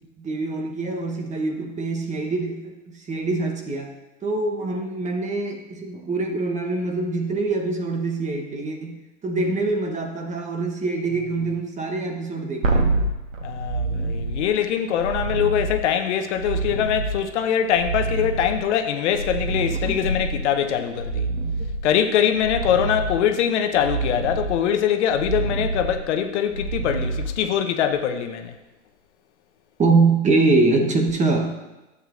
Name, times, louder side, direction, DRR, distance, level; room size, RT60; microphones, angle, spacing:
voice 1, 0.2-3.9 4.2-12.9 19.7-20.0 29.8-31.6, right 3 dB, 20° right, 3 dB, 1.0 m, -24 dB
sound 1, 12.6-27.9 31.1-31.2, right 2 dB, 85° right, 1.4 m, -27 dB
voice 2, 13.4-21.3 21.8-28.5, left 9 dB, 65° left, 6 dB, 0.9 m, -23 dB
12.0 x 8.2 x 2.5 m, 1.0 s
hypercardioid pair, 100°, 38 cm